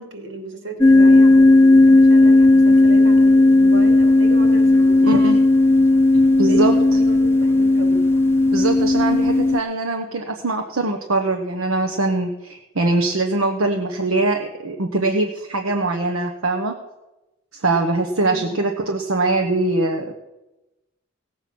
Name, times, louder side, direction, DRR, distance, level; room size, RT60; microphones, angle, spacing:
voice 1, 0.0-5.2 6.3-8.1 18.2-18.6, right 1 dB, 75° right, 3 dB, 2.6 m, -34 dB
sound 1, 0.8-9.6, left 2 dB, 10° left, 0.4 m, -14 dB
voice 2, 5.0-5.4 6.4-7.0 8.5-16.7 17.5-20.1, right 2 dB, 90° right, 3 dB, 1.0 m, -22 dB
17.0 x 7.8 x 6.1 m, 1.0 s
head